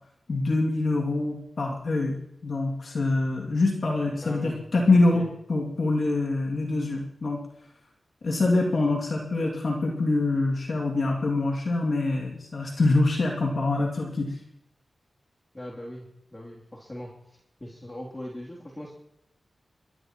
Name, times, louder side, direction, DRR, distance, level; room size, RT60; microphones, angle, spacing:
voice 1, 0.3-2.2 2.4-7.4 8.2-14.4, left 2 dB, 70° left, -1 dB, 2.4 m, -25 dB
voice 2, 4.2-4.6 4.9-5.3 15.5-18.9, left 1 dB, 25° left, -3 dB, 3.0 m, -40 dB
29.5 x 12.5 x 3.0 m, 0.81 s
cardioid pair, 50°, 0 cm